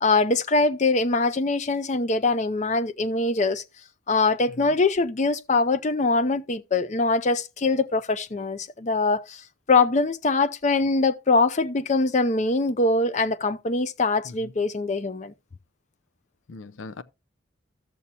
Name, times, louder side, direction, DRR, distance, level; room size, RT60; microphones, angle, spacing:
voice 1, 0.0-3.6 4.1-9.4 9.7-15.3, left 3 dB, 35° left, 0.5 m, -23 dB
voice 2, 16.5-17.0, left 3 dB, 80° left, 0.5 m, -41 dB
12.5 x 6.9 x 2.8 m
head